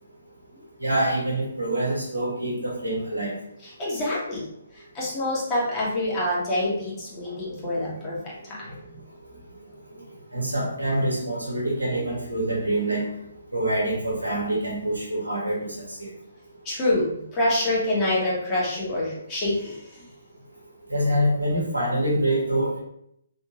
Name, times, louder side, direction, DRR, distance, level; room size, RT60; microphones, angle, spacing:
voice 1, 0.8-3.4 10.3-13.2 13.5-16.1 20.9-22.8, right 1 dB, 90° right, -3 dB, 1.3 m, -25 dB
voice 2, 3.8-4.5 4.9-8.7 16.6-20.1, left 1 dB, 25° left, -6 dB, 1.3 m, -26 dB
3.4 x 2.8 x 2.8 m, 0.73 s
figure-of-eight pair, 135°, 0 cm